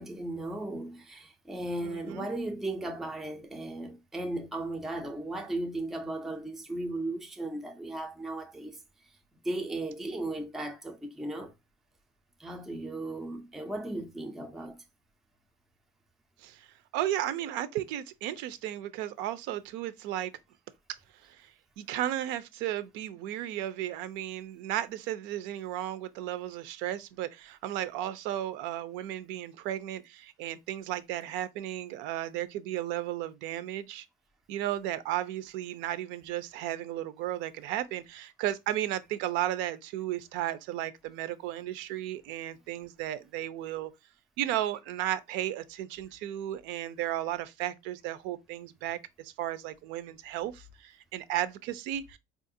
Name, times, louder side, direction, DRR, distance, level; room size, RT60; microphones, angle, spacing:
voice 1, 0.0-8.8 9.4-11.5 12.4-14.8, right 2 dB, ahead, 0.3 m, -36 dB
voice 2, 1.8-2.3 16.4-16.7 16.9-20.3 21.2-21.5 21.8-34.1 34.5-43.9 44.4-52.2, right 12 dB, 75° right, 0.5 m, -34 dB
4.2 x 2.4 x 2.6 m
cardioid pair, 180°, 19 cm